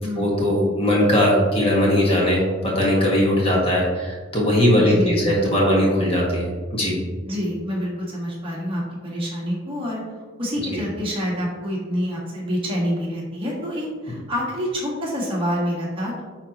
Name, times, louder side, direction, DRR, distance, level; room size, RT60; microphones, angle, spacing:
voice 1, 0.2-7.0 10.7-10.8, left 1 dB, 30° left, -4 dB, 1.5 m, -19 dB
voice 2, 4.7-5.6 7.3-10.0 10.4-16.2, equal, 25° right, -4 dB, 1.6 m, -27 dB
9.2 x 3.9 x 3.0 m, 1.4 s
head